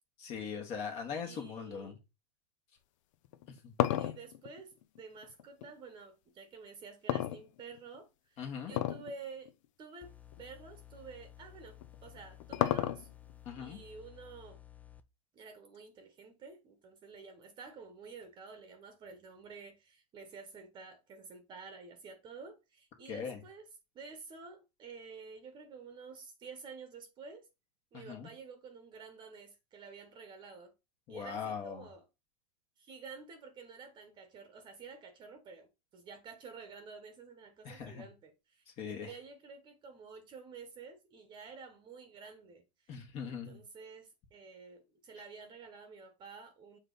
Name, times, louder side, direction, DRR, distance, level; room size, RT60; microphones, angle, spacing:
voice 1, 0.2-2.0 3.6-3.7 8.4-8.7 13.4-13.8 23.1-23.4 27.9-28.3 31.1-31.9 37.6-38.0 38.8-39.1 42.9-43.6, left 6 dB, 35° left, 1.5 m, -40 dB
voice 2, 1.2-2.0 3.9-4.7 5.0-9.5 9.8-10.1 10.4-13.1 13.5-14.6 15.3-23.7 23.9-27.5 27.9-30.7 31.1-32.0 32.8-42.9 43.2-46.8, right 4 dB, 25° right, 1.1 m, -50 dB
sound 1, 3.2-5.7 7.1-8.0 8.7-9.1 9.5-9.6 10.3-10.4 11.8-13.3, left 12 dB, 65° left, 0.7 m, -32 dB
sound 2, 10.0-15.0, left 12 dB, 10° left, 0.5 m, -55 dB
7.2 x 3.5 x 4.0 m
supercardioid pair, 140°, 18 cm